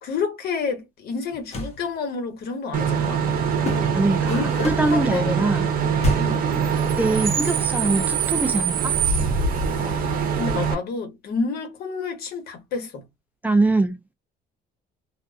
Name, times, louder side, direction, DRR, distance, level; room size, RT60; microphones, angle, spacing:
voice 1, 0.0-3.2 4.3-5.3 6.2-6.5 9.7-13.0, left 4 dB, 65° left, 1.1 m, -29 dB
sound 1, 1.3-1.8 3.6-5.0 6.0-6.5, left 1 dB, 40° left, 0.9 m, -28 dB
Bus / Idling / Screech, 2.7-10.7, right 6 dB, 60° right, 0.7 m, -23 dB
voice 2, 3.9-5.7 7.0-8.9 13.4-14.0, right 2 dB, 10° right, 0.3 m, -23 dB
2.4 x 2.4 x 2.3 m
cardioid pair, 110°, 17 cm